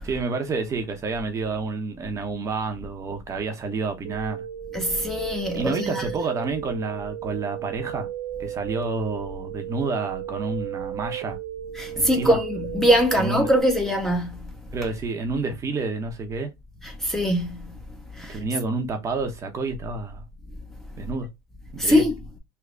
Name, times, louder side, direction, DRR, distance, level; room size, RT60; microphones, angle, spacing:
voice 1, 0.0-4.4 5.5-8.1 8.4-11.4 11.9-12.4 13.1-13.5 14.7-16.5 18.3-20.2 21.0-21.3 21.7-22.0, right 3 dB, 25° right, 0.9 m, -29 dB
sound 1, 4.1-13.6, right 13 dB, 70° right, 0.5 m, -35 dB
voice 2, 4.7-6.1 11.8-14.5 16.8-17.7 18.2-18.4 21.8-22.2, equal, 5° left, 0.8 m, -22 dB
3.4 x 2.2 x 3.7 m
supercardioid pair, 115°, 12 cm